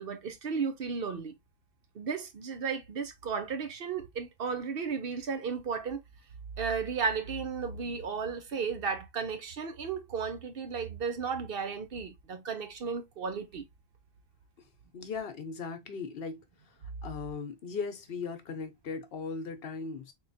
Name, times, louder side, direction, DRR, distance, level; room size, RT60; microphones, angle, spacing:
voice 1, 0.0-1.3 1.9-6.0 6.6-13.6, right 5 dB, 60° right, 0.9 m, -34 dB
voice 2, 14.9-16.4 17.0-20.1, left 5 dB, 65° left, 0.9 m, -38 dB
3.7 x 3.0 x 2.6 m
omnidirectional pair, 1.1 m